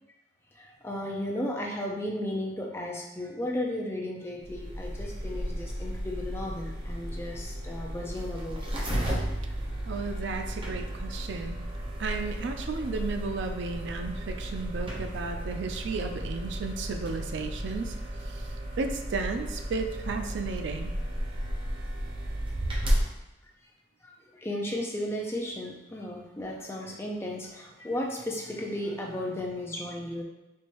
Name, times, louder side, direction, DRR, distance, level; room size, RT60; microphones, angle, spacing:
voice 1, 0.8-8.7 24.3-30.2, left 1 dB, 15° left, -1 dB, 0.5 m, -34 dB
sound 1, 4.4-23.0, equal, 25° right, 0.7 m, -33 dB
voice 2, 9.9-11.6 12.0-17.9 18.8-20.9, right 4 dB, 65° right, 5 dB, 0.4 m, -33 dB
4.5 x 2.6 x 2.9 m, 1.0 s
head